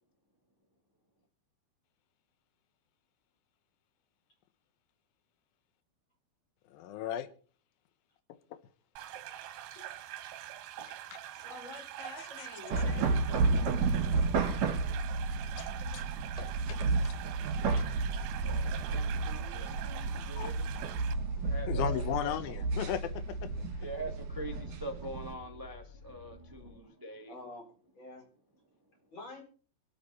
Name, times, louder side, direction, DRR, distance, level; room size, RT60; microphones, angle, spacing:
voice 1, 6.7-7.3 10.8-11.2 12.2-12.3 15.6-15.7 15.9-16.0 17.0-17.1 20.4-20.5 21.7-23.1 23.4-23.5, left 10 dB, 85° left, 2.7 m, -35 dB
sound 1, 9.0-21.1, right 12 dB, 80° right, 2.7 m, -45 dB
voice 2, 11.3-13.7 16.4-16.5 27.3-27.7 27.9-28.2 29.1-29.4, left 2 dB, 35° left, 5.2 m, -47 dB
sound 2, 12.7-25.3, right 3 dB, 65° right, 3.8 m, -32 dB
voice 3, 18.4-20.7 21.4-22.3 23.8-27.3, right 1 dB, 20° right, 0.5 m, -44 dB
sound 3, 21.1-26.8, left 3 dB, 55° left, 2.2 m, -52 dB
25.0 x 8.8 x 4.2 m
omnidirectional pair, 4.1 m